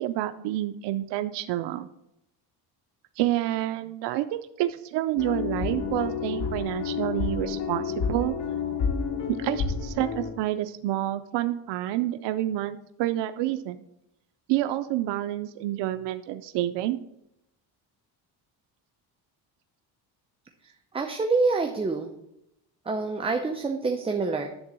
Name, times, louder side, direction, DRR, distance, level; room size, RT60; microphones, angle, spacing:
voice 1, 0.0-1.9 3.2-8.4 9.4-13.8 14.5-17.0, right 14 dB, 85° right, 9 dB, 0.6 m, -28 dB
sound 1, 5.2-10.3, left 6 dB, 85° left, 1.9 m, -30 dB
voice 2, 20.9-22.1 22.9-24.5, right 3 dB, 15° right, 4 dB, 0.6 m, -26 dB
10.5 x 3.8 x 7.5 m, 0.82 s
cardioid pair, 145°, 41 cm